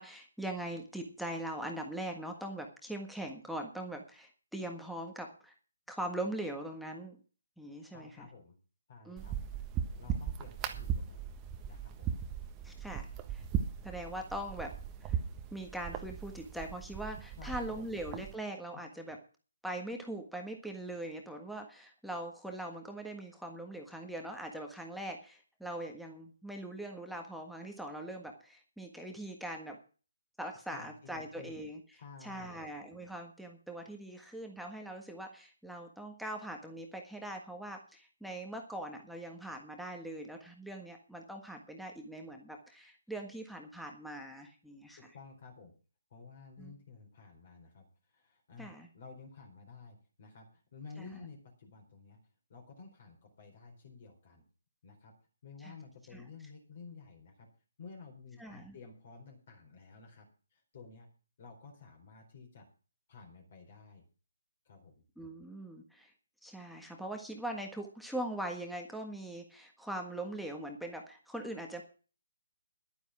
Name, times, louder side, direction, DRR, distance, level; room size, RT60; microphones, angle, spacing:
voice 1, 0.0-5.5 5.9-7.2 7.6-8.3 9.0-9.3 12.6-13.4 13.8-14.7 15.0-15.2 15.5-19.2 19.6-29.8 30.4-45.0 46.6-46.7 48.6-48.9 51.0-51.1 55.6-55.7 56.1-56.3 58.4-58.7 65.2-66.1 66.4-71.8, right 1 dB, ahead, 2 dB, 1.5 m, -41 dB
voice 2, 7.9-8.6 8.9-9.3 10.0-11.3 11.7-12.1 17.4-17.9 30.7-31.6 31.9-32.7 45.0-45.7 46.1-52.2 52.5-54.4 54.8-55.1 55.4-57.5 57.8-60.3 60.5-61.1 61.4-62.7 63.1-64.0 64.7-65.0, left 4 dB, 45° left, 1 dB, 4.4 m, -52 dB
sound 1, 9.2-18.3, right 8 dB, 20° right, 1.3 m, -38 dB
11.5 x 9.8 x 6.1 m, 0.38 s
figure-of-eight pair, 145°, 0 cm